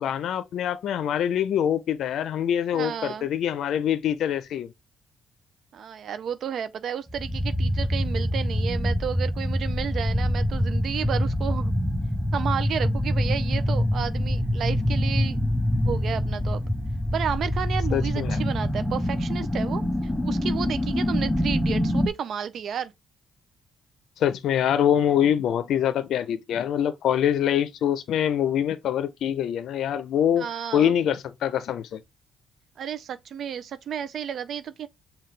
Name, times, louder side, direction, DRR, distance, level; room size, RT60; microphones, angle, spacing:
voice 1, 0.0-4.7 17.9-18.4 24.2-32.0, left 9 dB, 75° left, 0.5 m, -24 dB
voice 2, 2.7-3.3 5.7-11.7 12.3-15.4 15.8-16.6 17.1-22.9 30.4-31.0 32.8-34.9, right 8 dB, 65° right, 0.4 m, -32 dB
sound 1, 7.1-22.1, left 1 dB, 5° left, 0.5 m, -25 dB
5.7 x 2.3 x 3.2 m
cardioid pair, 90°, 0 cm